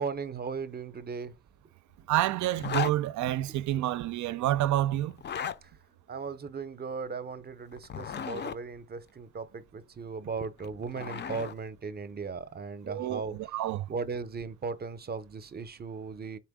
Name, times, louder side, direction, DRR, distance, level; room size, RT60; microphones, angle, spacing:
voice 1, 0.0-1.4 3.5-3.6 5.6-5.7 6.1-13.4 13.9-16.4, right 5 dB, 35° right, 0.7 m, -37 dB
voice 2, 2.1-5.2 12.8-13.9, right 13 dB, 75° right, 0.5 m, -28 dB
Zipper (clothing), 2.5-3.0 5.1-5.6 7.7-8.6 10.4-11.5, left 8 dB, 35° left, 0.5 m, -35 dB
4.3 x 3.4 x 3.6 m
cardioid pair, 90°, 30 cm